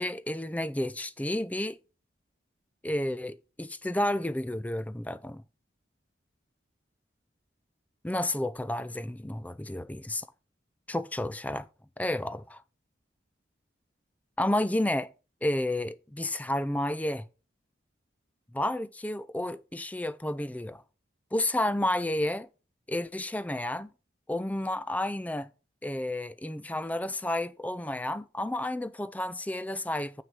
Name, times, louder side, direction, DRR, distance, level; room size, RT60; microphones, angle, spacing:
voice 1, 0.0-1.8 2.8-5.4 8.0-10.2 10.9-11.7 12.0-12.6 14.4-15.1 15.4-17.2 18.5-20.8 21.3-22.5 22.9-23.9 24.3-25.5 25.8-30.2, left 1 dB, 10° left, 0.4 m, -31 dB
7.4 x 6.2 x 6.1 m
head